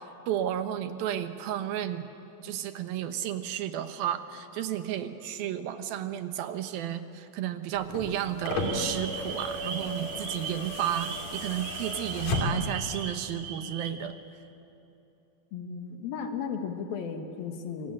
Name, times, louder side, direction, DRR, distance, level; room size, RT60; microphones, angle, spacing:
voice 1, 0.3-2.1 2.4-14.1, right 10 dB, 80° right, 9 dB, 2.9 m, -32 dB
sound 1, 7.7-12.9 14.1-14.2, left 2 dB, 50° left, 4.0 m, -34 dB
sound 2, 8.5-13.9, right 6 dB, 50° right, 2.2 m, -39 dB
voice 2, 15.5-17.9, left 6 dB, 80° left, 5 dB, 3.3 m, -35 dB
26.5 x 24.0 x 8.9 m, 2.8 s
omnidirectional pair, 4.2 m